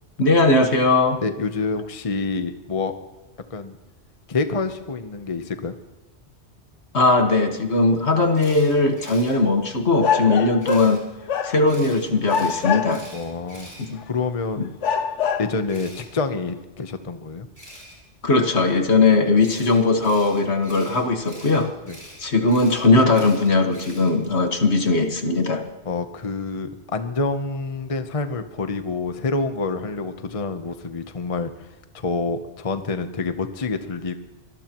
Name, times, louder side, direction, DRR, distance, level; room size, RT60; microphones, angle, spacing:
voice 1, 0.2-1.2 6.9-11.0 11.4-13.0 13.8-14.0 14.6-14.7 18.2-21.7 22.2-25.6, left 3 dB, 70° left, 5 dB, 1.9 m, -19 dB
voice 2, 1.2-2.9 3.5-3.7 4.3-5.7 13.1-13.7 14.1-14.7 15.4-17.5 21.9-22.0 25.8-31.5 31.9-34.1, left 3 dB, 30° left, 8 dB, 0.9 m, -27 dB
Camera, 8.3-9.3 10.6-11.0 11.7-14.4 15.7-16.1 17.5-17.9 19.4-24.3, equal, 30° right, 7.4 m, -44 dB
sound 1, 8.5-8.6 10.0-11.0 11.3-11.9 12.3-13.2 14.0-14.1 14.8-15.6, left 7 dB, 90° left, 1.2 m, -24 dB
24.5 x 19.0 x 3.0 m, 1.1 s
omnidirectional pair, 1.2 m